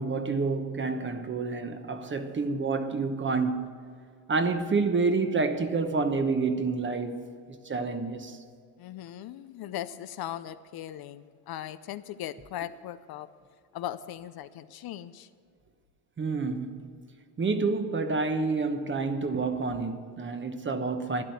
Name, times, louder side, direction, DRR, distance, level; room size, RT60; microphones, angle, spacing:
voice 1, 0.0-3.7 4.3-7.3 7.6-8.4 16.2-16.9 17.4-21.2, right 4 dB, 25° right, 1.1 m, -28 dB
voice 2, 8.8-13.3 13.7-15.3, left 11 dB, 50° left, 0.6 m, -39 dB
12.5 x 10.0 x 8.0 m
cardioid pair, 110°, 47 cm